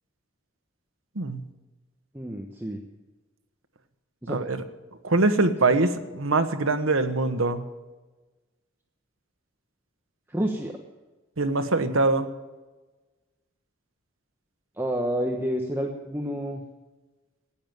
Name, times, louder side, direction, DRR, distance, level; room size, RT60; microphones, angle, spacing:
voice 1, 2.1-2.8 4.2-4.4 10.3-10.7 14.8-16.6, equal, 10° right, 1 dB, 1.1 m, -29 dB
voice 2, 4.3-4.6 5.0-7.6 11.4-12.3, right 3 dB, 85° right, 9 dB, 1.3 m, -23 dB
16.0 x 9.6 x 9.3 m, 1.2 s
head